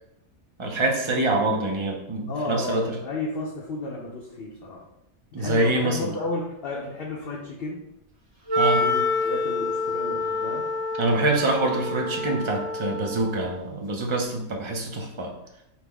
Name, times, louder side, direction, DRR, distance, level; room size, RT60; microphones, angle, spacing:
voice 1, 0.6-3.0 5.3-6.1 8.6-8.9 11.0-15.3, right 2 dB, 45° right, 1 dB, 0.4 m, -25 dB
voice 2, 2.3-4.8 5.3-7.9 8.7-10.7, left 2 dB, 60° left, -3 dB, 0.8 m, -32 dB
Wind instrument woodwind instrument, 8.5-13.6, left 2 dB, 65° right, 1.3 m, -27 dB
5.6 x 2.1 x 3.3 m, 0.82 s
omnidirectional pair, 1.3 m